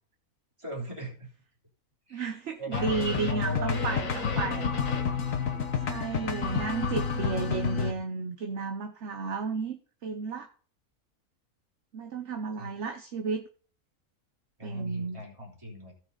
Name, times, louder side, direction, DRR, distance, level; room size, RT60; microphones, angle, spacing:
voice 1, 0.6-1.3 2.1-4.7 6.3-6.8 12.6-12.7 14.6-15.9, equal, 20° right, -3 dB, 3.4 m, -39 dB
voice 2, 2.1-4.7 5.8-10.5 11.9-13.4 14.6-15.2, right 4 dB, 55° right, 5 dB, 1.1 m, -33 dB
sound 1, 2.7-7.9, left 5 dB, 60° left, 1.6 m, -29 dB
15.5 x 6.3 x 4.0 m, 0.42 s
omnidirectional pair, 1.5 m